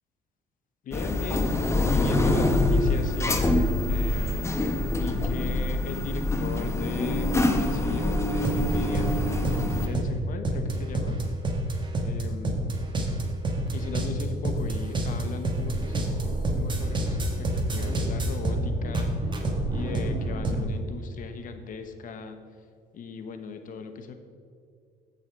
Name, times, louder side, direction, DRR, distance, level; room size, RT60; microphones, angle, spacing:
voice 1, 0.8-9.1 9.8-11.2 12.0-12.6 13.7-19.1 19.7-22.4 22.9-24.1, left 5 dB, 55° left, 7 dB, 1.1 m, -38 dB
sound 1, 0.9-9.9, left 1 dB, 15° left, 0.9 m, -25 dB
sound 2, 8.4-20.7, right 1 dB, 25° right, 1.4 m, -28 dB
14.5 x 5.7 x 4.7 m, 2.2 s
cardioid pair, 110°, 17 cm